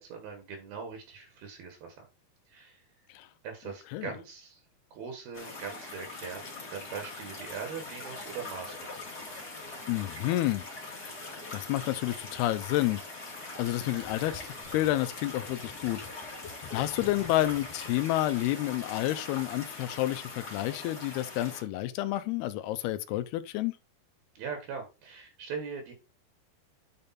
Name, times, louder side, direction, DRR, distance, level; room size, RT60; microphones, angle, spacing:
voice 1, 0.0-2.1 2.5-2.9 3.4-4.6 4.9-9.0 24.4-25.9, right 6 dB, 75° right, 3.5 m, -41 dB
sound 1, 5.3-21.6, left 2 dB, 30° left, 2.3 m, -42 dB
voice 2, 9.9-10.6 11.5-13.0 13.6-14.4 14.7-16.0 16.7-23.7, left 15 dB, 90° left, 2.7 m, -29 dB
Gurgling, 14.0-18.7, left 5 dB, 50° left, 2.6 m, -48 dB
9.7 x 5.3 x 4.2 m
omnidirectional pair, 4.5 m